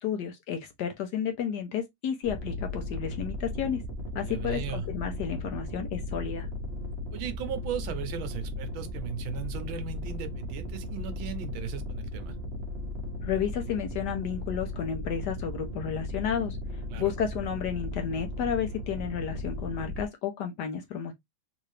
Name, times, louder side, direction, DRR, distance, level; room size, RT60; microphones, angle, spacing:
voice 1, 0.0-3.8 4.1-6.5 13.2-16.6 17.0-21.1, left 8 dB, 70° left, 1.1 m, -32 dB
sound 1, 2.2-20.0, left 1 dB, 40° right, 1.1 m, -36 dB
voice 2, 4.3-4.9 7.1-12.3 16.9-17.1, right 9 dB, 80° right, 1.5 m, -37 dB
3.8 x 2.6 x 3.1 m
omnidirectional pair, 2.2 m